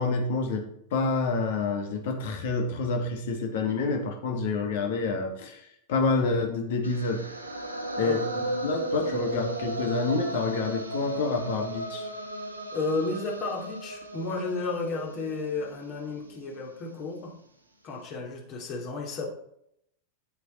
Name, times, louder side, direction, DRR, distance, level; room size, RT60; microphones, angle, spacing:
voice 1, 0.0-5.6 5.9-7.2 8.0-12.1, left 3 dB, 55° left, 2 dB, 2.3 m, -28 dB
sound 1, 6.8-16.9, right 2 dB, 80° right, 1.5 m, -36 dB
voice 2, 12.7-17.3 17.8-19.3, left 3 dB, 40° left, -1 dB, 3.0 m, -32 dB
9.4 x 8.1 x 4.4 m, 0.72 s
figure-of-eight pair, 90°, 0 cm